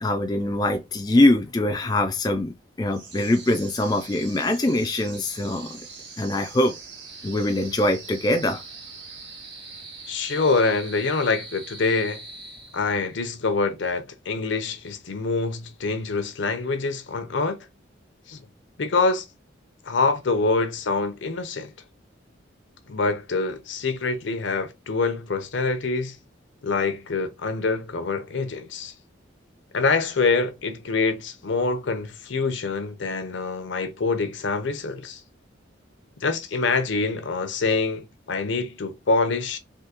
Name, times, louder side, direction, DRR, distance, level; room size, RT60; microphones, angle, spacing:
voice 1, 0.0-5.8 6.2-6.7 7.2-8.6, left 1 dB, 20° left, 0.3 m, -23 dB
sound 1, 2.9-13.1, right 4 dB, 60° right, 1.4 m, -42 dB
voice 2, 10.1-12.2 12.7-17.6 18.3-18.4 18.8-19.2 19.9-21.7 22.9-26.2 26.6-28.9 29.7-35.2 36.2-39.6, left 3 dB, 70° left, 0.6 m, -25 dB
3.5 x 2.7 x 2.9 m
head